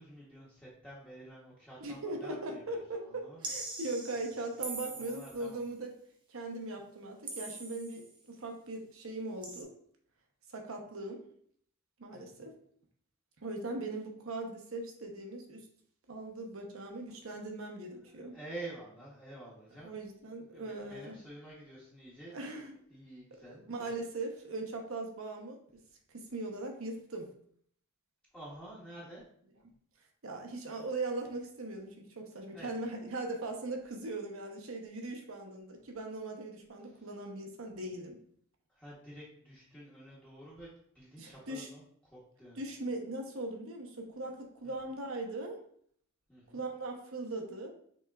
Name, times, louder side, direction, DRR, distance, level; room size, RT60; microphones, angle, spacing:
voice 1, 0.0-3.8 4.9-5.6 12.1-12.5 17.2-17.3 17.9-19.9 20.5-23.9 28.3-29.2 32.5-32.8 36.8-37.1 38.7-40.7 40.9-42.6 44.6-44.7 46.3-46.6, right 1 dB, 5° left, -8 dB, 1.0 m, -49 dB
voice 2, 1.8-5.9 6.3-9.7 10.5-11.2 12.0-12.5 13.4-15.7 16.1-18.4 19.8-21.2 22.3-22.7 23.5-25.6 26.1-27.3 30.2-38.2 41.2-41.7 42.6-45.6 46.5-47.7, right 2 dB, 65° right, 2 dB, 0.8 m, -40 dB
sound 1, 3.4-5.6 7.3-8.1 9.4-9.6, right 3 dB, 20° right, 0.6 m, -42 dB
6.1 x 3.5 x 2.4 m, 0.64 s
head